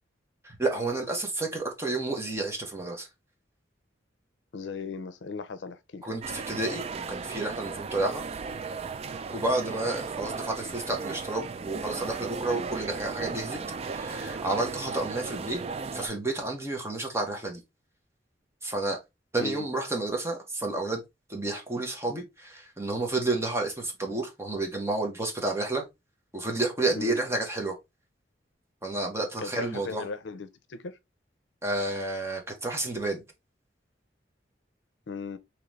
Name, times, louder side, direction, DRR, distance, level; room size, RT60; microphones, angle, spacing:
voice 1, 0.4-3.1 6.0-8.2 9.3-15.6 15.9-17.6 18.6-19.0 19.3-21.0 21.3-25.9 26.3-27.8 28.8-30.1 31.6-33.2, right 2 dB, 15° right, 1.0 m, -30 dB
voice 2, 4.5-6.1 19.4-19.7 27.0-27.2 29.4-31.0 35.1-35.4, left 4 dB, 80° left, 0.5 m, -37 dB
sound 1, 6.2-16.1, right 4 dB, 35° right, 0.3 m, -36 dB
3.8 x 3.0 x 3.1 m
head